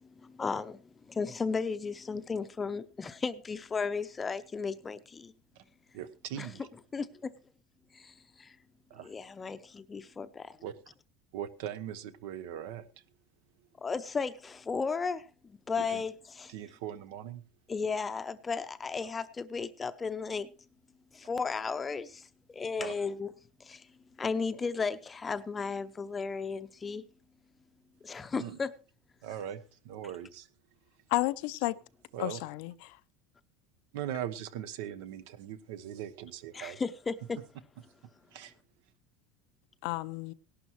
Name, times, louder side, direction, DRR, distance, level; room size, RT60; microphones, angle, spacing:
voice 1, 0.2-0.8 1.1-5.3 6.4-6.5 6.9-7.3 7.9-8.5 9.0-10.4 13.8-16.5 17.7-20.5 21.1-23.3 23.6-23.8 24.2-27.0 28.0-28.7 36.5-37.4, left 5 dB, 15° left, 0.7 m, -35 dB
voice 2, 5.9-6.7 8.9-9.1 10.6-10.7 11.3-12.8 15.8-16.0 16.5-17.4 22.8-22.9 28.3-28.6 29.2-30.5 32.1-32.4 33.9-36.8 38.3-38.5, right 10 dB, 75° right, 1.1 m, -40 dB
voice 3, 31.1-31.8 32.2-33.0 39.8-40.3, left 19 dB, 65° left, 0.6 m, -32 dB
18.0 x 11.5 x 3.1 m
supercardioid pair, 150°, 0 cm